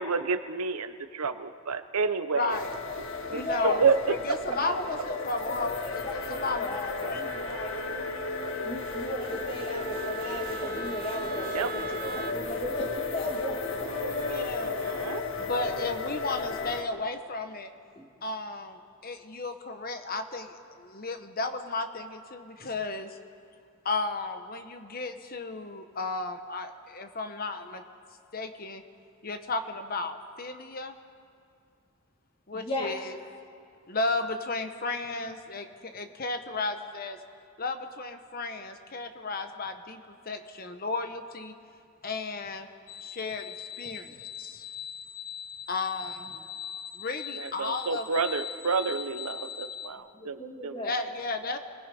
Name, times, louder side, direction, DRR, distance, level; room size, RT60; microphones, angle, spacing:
voice 1, 0.0-2.6 3.2-4.2 11.5-11.7 13.8-15.2 47.3-50.8, right 5 dB, 90° right, 11 dB, 1.0 m, -30 dB
voice 2, 2.4-2.7 3.3-3.8 4.3-7.2 14.3-14.7 15.4-17.7 18.2-23.2 23.8-27.8 28.3-28.8 29.2-30.9 32.5-33.1 33.9-37.2 37.6-41.5 42.0-42.7 43.0-44.6 45.7-46.3 46.9-48.1 50.8-51.6, left 3 dB, 40° left, 7 dB, 1.1 m, -34 dB
sound 1, 2.5-16.8, left 4 dB, 60° left, 1.8 m, -34 dB
voice 3, 3.3-3.8 4.6-4.7 5.1-7.8 8.6-14.4 18.0-18.1 32.5-33.0 46.3-46.4 50.1-50.9, left 1 dB, 25° left, 1 dB, 2.4 m, -37 dB
Wind instrument woodwind instrument, 7.2-12.4, right 6 dB, 40° right, 0.5 m, -42 dB
sound 2, 42.9-49.9, left 8 dB, 80° left, 0.9 m, -40 dB
29.0 x 20.0 x 5.4 m, 2.4 s
head